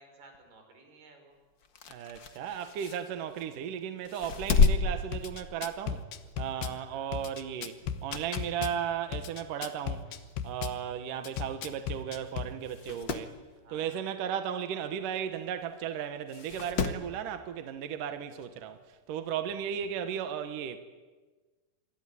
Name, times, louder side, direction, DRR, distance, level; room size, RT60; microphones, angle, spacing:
voice 1, 0.0-1.4 6.5-7.1 10.1-10.3 13.6-14.3 19.6-20.4, right 2 dB, 80° right, 7.0 m, -58 dB
sound 1, 1.6-3.6 4.0-5.9 6.3-6.5 7.8-8.6 9.1-9.2 10.1-10.2 10.4-10.5 10.7-10.8 11.6-11.8 12.1-12.2 12.6-13.3 15.2-15.3 16.3-17.1 18.4-18.5, left 4 dB, 55° left, 1.2 m, -31 dB
voice 2, 1.9-6.0 6.4-7.8 8.0-10.1 10.4-13.3 13.7-18.8 19.1-20.8, right 8 dB, 65° right, 2.6 m, -35 dB
Drum kit / Bass drum, 4.6-4.8 5.1-6.8 7.1-8.8 9.1-10.8 11.2-12.5, left 8 dB, 85° left, 3.3 m, -35 dB
27.5 x 22.0 x 9.9 m
omnidirectional pair, 4.5 m